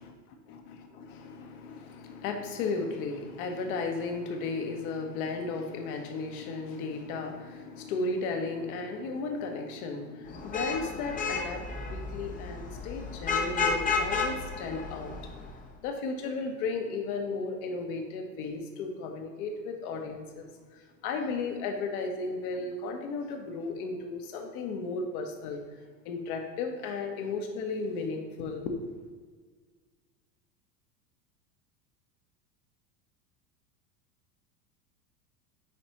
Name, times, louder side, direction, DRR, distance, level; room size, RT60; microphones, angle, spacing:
voice 1, 0.5-15.3 15.8-25.6 26.0-28.9, left 4 dB, 60° left, 4 dB, 1.2 m, -35 dB
Vehicle horn car horn honking / Traffic noise roadway noise, 10.3-15.6, left 4 dB, 15° left, 0.6 m, -32 dB
9.5 x 4.1 x 3.0 m, 1.5 s
hypercardioid pair, 90°, 50 cm